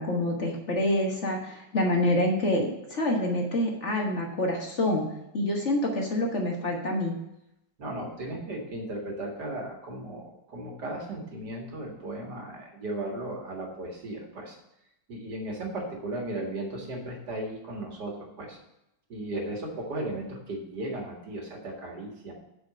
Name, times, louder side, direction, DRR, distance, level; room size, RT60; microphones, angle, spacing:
voice 1, 0.0-5.1 5.3-7.2, left 1 dB, 40° left, 0 dB, 1.5 m, -27 dB
voice 2, 7.8-14.6 15.1-18.6 19.1-22.3, right 1 dB, 65° right, 0 dB, 2.3 m, -36 dB
8.0 x 5.1 x 7.6 m, 0.83 s
omnidirectional pair, 2.0 m